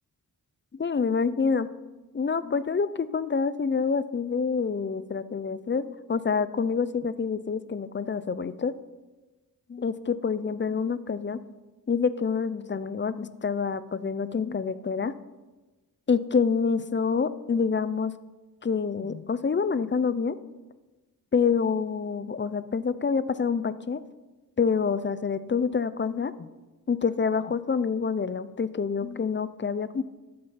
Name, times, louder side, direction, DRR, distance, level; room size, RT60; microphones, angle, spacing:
voice 1, 0.8-1.7 2.1-8.7 9.7-11.4 11.9-15.1 16.1-18.1 18.6-20.4 21.3-24.0 24.6-26.5 26.9-30.0, left 5 dB, 30° left, 14 dB, 0.5 m, -27 dB
13.0 x 7.8 x 5.7 m, 1.2 s
wide cardioid pair, 110°, 36 cm